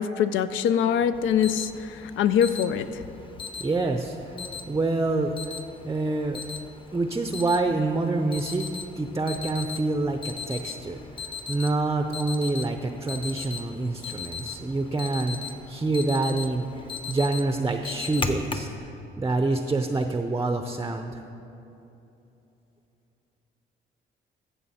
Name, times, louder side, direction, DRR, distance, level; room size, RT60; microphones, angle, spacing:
voice 1, 0.0-3.0, left 8 dB, 80° left, 13 dB, 0.5 m, -24 dB
Alarm, 1.1-18.8, left 4 dB, 25° left, 0.8 m, -38 dB
voice 2, 3.6-4.2 4.7-5.5 5.8-6.4 6.9-8.7 9.0-11.0 11.5-18.7 19.2-21.2, right 2 dB, 15° right, 6 dB, 0.5 m, -26 dB
15.0 x 6.9 x 4.2 m, 2.9 s
cardioid pair, 90°, 20 cm